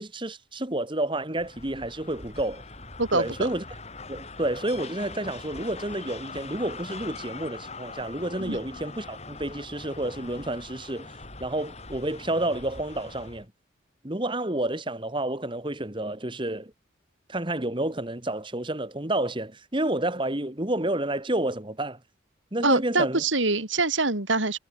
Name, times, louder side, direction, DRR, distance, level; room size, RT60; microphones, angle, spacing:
voice 1, 0.0-2.6 3.1-3.6 4.1-11.1 11.4-13.5 14.0-16.7 17.3-22.0 22.5-23.2, right 1 dB, 25° right, 2.0 m, -30 dB
sound 1, 1.4-13.5, left 3 dB, 35° left, 5.7 m, -42 dB
voice 2, 3.0-3.5 8.4-8.6 22.6-24.6, right 3 dB, 85° right, 4.8 m, -25 dB
head